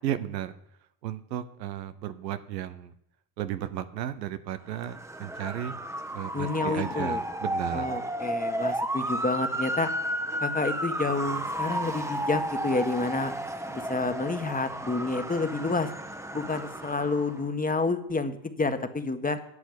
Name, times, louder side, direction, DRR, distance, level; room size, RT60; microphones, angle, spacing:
voice 1, 0.0-0.5 1.0-2.9 3.4-5.8 6.1-7.9, right 11 dB, 90° right, 11 dB, 0.8 m, -34 dB
Motor vehicle (road) / Siren, 4.7-17.4, right 1 dB, 5° right, 1.1 m, -33 dB
voice 2, 6.3-7.2 7.7-9.9 10.4-13.3 13.7-15.9 16.3-19.4, left 3 dB, 15° left, 8 dB, 1.5 m, -29 dB
11.0 x 6.2 x 8.1 m, 0.77 s
hypercardioid pair, 65°, 49 cm